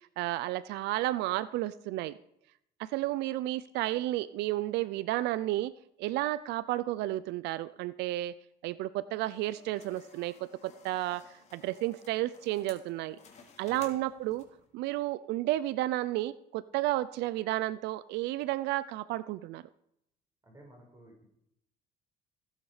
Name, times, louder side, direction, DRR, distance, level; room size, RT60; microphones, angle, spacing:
voice 1, 0.0-2.2 2.8-5.7 6.0-8.3 8.6-13.2 13.6-14.4 14.7-19.6, right 16 dB, 85° right, 17 dB, 0.5 m, -32 dB
sound 1, 9.2-14.7, left 5 dB, 40° left, 3.5 m, -56 dB
voice 2, 13.7-14.0 20.4-21.3, right 1 dB, 20° right, 0 dB, 6.1 m, -55 dB
17.0 x 11.5 x 4.9 m, 0.77 s
cardioid pair, 110°, 17 cm